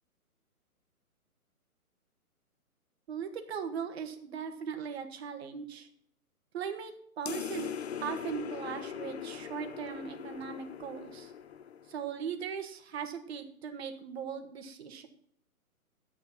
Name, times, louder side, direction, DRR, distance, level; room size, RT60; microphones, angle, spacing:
voice 1, 3.1-5.9 6.5-7.7 8.0-11.3 11.9-15.1, right 7 dB, 45° right, 7 dB, 1.7 m, -39 dB
sound 1, 7.2-12.1, left 8 dB, 45° left, 0.9 m, -41 dB
11.0 x 8.4 x 5.8 m, 0.67 s
hypercardioid pair, 140°, 45 cm